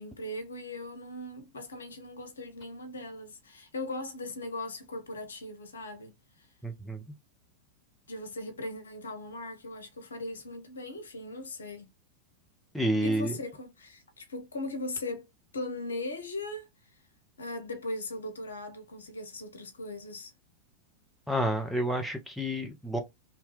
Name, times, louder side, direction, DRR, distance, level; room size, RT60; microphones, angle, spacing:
voice 1, 0.0-6.1 8.1-11.9 13.0-15.3 15.5-16.7 17.4-20.3, left 2 dB, 70° left, 0.8 m, -39 dB
voice 2, 6.6-7.0 12.7-13.4 21.3-23.0, right 1 dB, ahead, 0.6 m, -29 dB
2.8 x 2.2 x 3.2 m
figure-of-eight pair, 90°, 0 cm